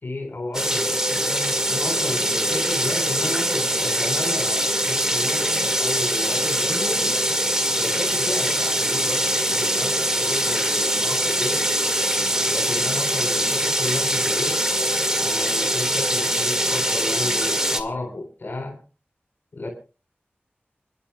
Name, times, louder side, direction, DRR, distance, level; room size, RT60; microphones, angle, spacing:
voice 1, 0.0-7.2 7.8-11.6 12.5-14.6 15.2-18.8 19.5-19.7, left 2 dB, 60° left, 3 dB, 4.0 m, -32 dB
sound 1, 0.5-17.8, equal, 15° right, 1.9 m, -23 dB
29.5 x 11.0 x 2.3 m, 0.32 s
wide cardioid pair, 70°, 4 cm